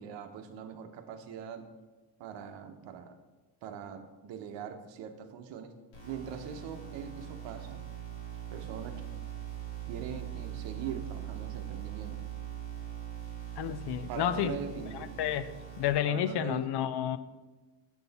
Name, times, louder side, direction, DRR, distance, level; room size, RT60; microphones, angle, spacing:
voice 1, 0.0-1.7 2.2-3.2 3.6-5.7 6.0-7.8 8.5-8.9 9.9-12.2 14.1-15.1 16.1-17.1, right 7 dB, 85° right, 7 dB, 0.9 m, -42 dB
sound 1, 5.9-15.9, right 10 dB, 85° left, 2.6 m, -41 dB
voice 2, 13.6-14.6 15.2-15.5 15.8-17.2, left 10 dB, 65° left, 13 dB, 0.5 m, -30 dB
7.1 x 5.8 x 4.1 m, 1.2 s
cardioid pair, 135°, 43 cm